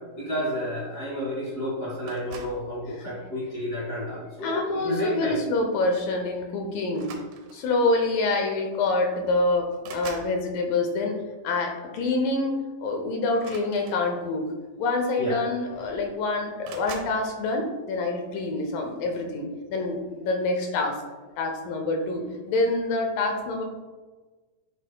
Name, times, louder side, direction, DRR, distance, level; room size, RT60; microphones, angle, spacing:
voice 1, 0.1-5.4 15.2-15.4, equal, 50° left, -6 dB, 1.0 m, -30 dB
sound 1, 2.1-2.7 3.6-3.9 5.4-5.6 5.8-6.0 6.9-7.8 8.8-8.9 9.2-10.4 13.3-14.4 15.3-15.4 15.7-16.2 16.6-17.2, right 5 dB, 75° right, 2.0 m, -43 dB
voice 2, 4.4-7.1 7.5-12.5 12.8-14.4 14.8-21.0 21.4-23.6, left 2 dB, 75° left, 3 dB, 2.2 m, -26 dB
9.3 x 5.4 x 2.2 m, 1.3 s
omnidirectional pair, 4.3 m